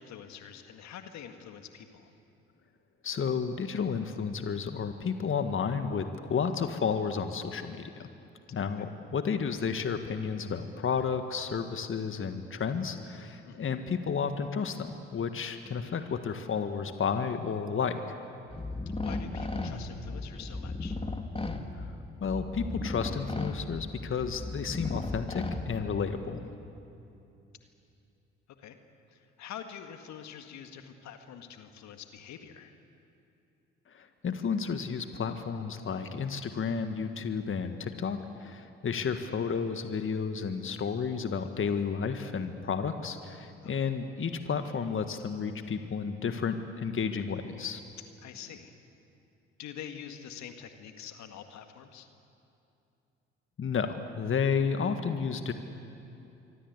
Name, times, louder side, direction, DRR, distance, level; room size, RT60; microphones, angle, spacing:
voice 1, 0.0-2.1 8.8-8.9 13.5-13.7 19.0-21.0 28.6-28.8 29.1-32.8 43.6-43.9 48.2-48.7 49.6-52.1, left 8 dB, 60° left, 7 dB, 1.9 m, -46 dB
voice 2, 3.0-7.9 8.5-18.2 21.7-21.9 22.2-26.4 33.9-47.8 53.6-55.5, left 6 dB, 40° left, 8 dB, 1.7 m, -32 dB
sound 1, 18.5-26.2, left 2 dB, 20° left, 2.5 m, -36 dB
25.0 x 24.5 x 8.2 m, 2.7 s
hypercardioid pair, 45°, 31 cm